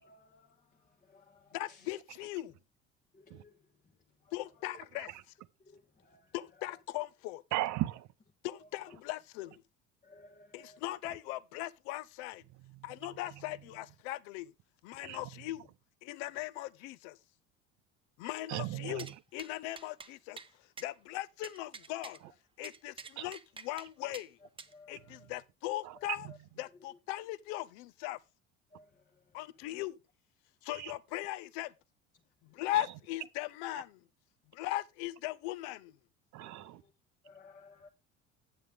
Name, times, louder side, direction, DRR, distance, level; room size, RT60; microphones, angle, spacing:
voice 1, 0.0-0.5 1.1-1.4 3.1-3.5 5.7-5.8 6.0-6.2 10.0-10.8 24.7-25.0 28.7-28.9 36.4-36.5 37.2-37.9, left 3 dB, 20° left, 1.1 m, -57 dB
voice 2, 1.5-2.5 4.3-5.1 6.3-7.4 8.4-9.6 10.5-12.4 12.8-14.5 14.8-15.7 16.0-17.2 18.2-19.1 19.3-20.4 20.8-22.2 22.6-24.4 24.9-26.3 26.6-28.2 29.3-30.0 30.6-31.7 32.4-34.0 34.5-35.9, left 16 dB, 65° left, 0.7 m, -39 dB
voice 3, 7.5-8.1 12.5-13.5 15.0-15.2 18.5-19.2 23.2-23.3 25.1-25.2 25.8-26.0 26.2-26.4 30.7-30.9 32.7-32.9 36.3-36.8, right 15 dB, 50° right, 0.8 m, -38 dB
sound 1, 19.0-19.1 19.4-19.5 19.8-20.1 20.4-20.5 20.8-20.9 21.4-22.2 22.6-23.9 24.1-24.3 24.6-24.7, right 4 dB, 15° right, 0.6 m, -47 dB
8.8 x 7.5 x 3.5 m
hypercardioid pair, 65°, 37 cm